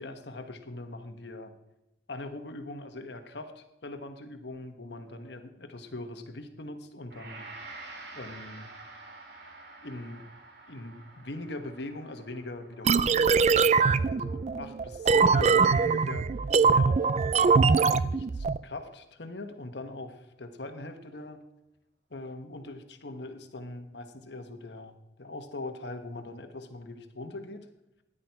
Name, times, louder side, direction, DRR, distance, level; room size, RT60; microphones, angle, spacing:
voice 1, 0.0-1.5 2.1-7.5 8.1-8.7 9.8-10.2 10.7-16.3 16.7-21.4 22.1-27.7, left 2 dB, 70° left, 7 dB, 1.3 m, -41 dB
Gong, 7.1-16.3, right 2 dB, 70° right, 2.1 m, -49 dB
sound 1, 12.9-18.6, right 5 dB, 40° right, 0.3 m, -23 dB
13.5 x 10.0 x 4.6 m, 0.91 s
head